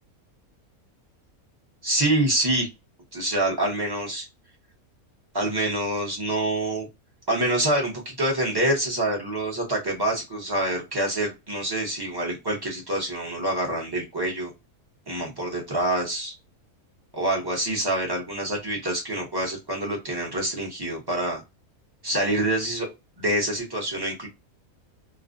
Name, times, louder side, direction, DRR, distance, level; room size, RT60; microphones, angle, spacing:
voice 1, 1.8-2.7 3.1-4.3 5.3-6.9 7.3-14.5 15.1-16.3 17.1-21.4 22.0-22.9 23.2-24.3, right 1 dB, 25° right, -2 dB, 0.6 m, -26 dB
2.4 x 2.1 x 2.5 m, 0.23 s
omnidirectional pair, 1.5 m